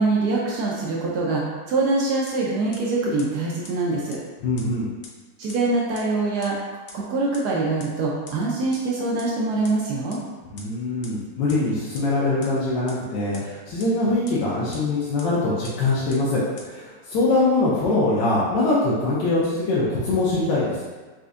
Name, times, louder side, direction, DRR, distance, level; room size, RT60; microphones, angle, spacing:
voice 1, 0.0-4.2 5.4-6.6 6.9-10.2, right 3 dB, 75° right, -3 dB, 1.0 m, -24 dB
sound 1, 2.3-2.4 2.7-2.8 3.2-3.3 3.6-3.7 4.1-4.2 4.6-4.7 5.0-5.1 5.5-5.6 6.0-6.1 6.4-6.5 6.9-7.0 7.3-7.4 7.8-7.9 8.3-8.4 8.7-8.8 9.2-9.3 9.6-9.7 10.1-10.2 10.6-10.7 11.0-11.1 11.5-11.6 11.9-12.0 12.4-12.5 12.9-13.0 13.3-13.4 13.8-13.9 14.3-14.4 14.7-14.8 15.2-15.3 15.6-15.7 16.1-16.2 16.6-16.7, left 5 dB, 70° left, 1.0 m, -41 dB
voice 2, 4.4-4.9 10.5-20.8, left 2 dB, 85° left, -7 dB, 1.3 m, -23 dB
4.3 x 2.5 x 2.4 m, 1.3 s
omnidirectional pair, 1.9 m